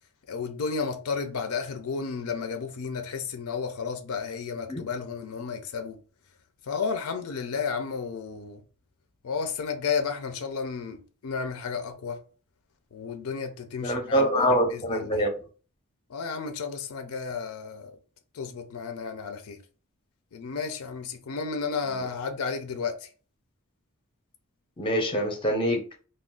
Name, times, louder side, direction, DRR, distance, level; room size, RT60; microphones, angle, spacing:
voice 1, 0.3-6.0 6.7-8.6 9.2-12.2 12.9-15.3 16.1-17.9 18.3-19.6 20.3-23.1, left 5 dB, 75° left, 0.4 m, -32 dB
voice 2, 13.8-15.3 24.8-25.8, equal, 25° left, 0.6 m, -24 dB
2.4 x 2.2 x 3.5 m
head